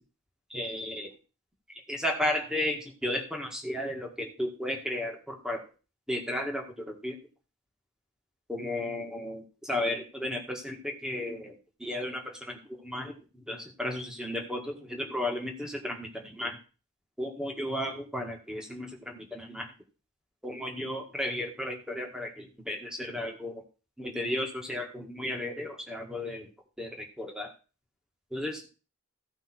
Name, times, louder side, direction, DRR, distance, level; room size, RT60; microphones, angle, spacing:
voice 1, 0.5-1.1 1.7-5.6 6.1-7.2 8.5-13.1 13.5-16.6 17.2-19.7 20.4-23.6 24.0-26.5 26.8-27.5 28.3-28.6, left 1 dB, 5° right, 1 dB, 1.9 m, -34 dB
15.5 x 5.5 x 4.5 m, 0.34 s
head